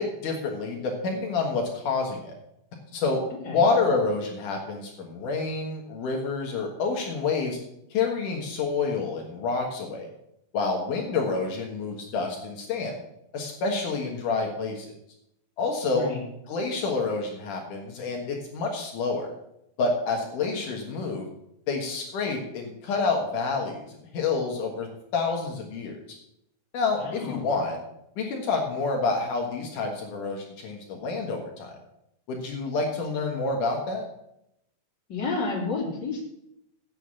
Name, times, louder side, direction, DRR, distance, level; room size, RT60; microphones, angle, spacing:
voice 1, 0.0-2.3 2.9-3.2 3.5-7.6 7.9-10.1 10.5-13.0 13.3-14.9 15.6-16.1 16.5-19.3 19.8-21.3 21.7-24.9 25.1-25.9 26.7-27.8 28.2-31.8 32.3-34.1, left 4 dB, 70° left, 1 dB, 2.7 m, -28 dB
voice 2, 27.0-27.4 35.1-36.2, left 3 dB, 30° left, -1 dB, 2.9 m, -30 dB
8.0 x 7.5 x 8.1 m, 0.81 s
omnidirectional pair, 3.9 m